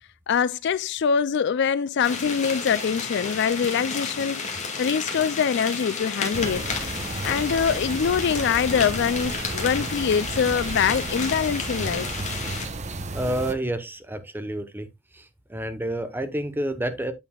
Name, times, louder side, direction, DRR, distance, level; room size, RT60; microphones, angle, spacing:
voice 1, 0.3-4.5 4.8-6.6 7.2-12.1, left 7 dB, 60° left, 0.4 m, -24 dB
sound 1, 2.0-12.7, left 4 dB, 35° left, 2.1 m, -32 dB
sound 2, 6.3-13.5, right 2 dB, 35° right, 0.8 m, -33 dB
voice 2, 13.1-14.9 15.1-15.2 15.5-17.1, right 1 dB, 10° right, 0.9 m, -29 dB
8.6 x 7.0 x 2.3 m
head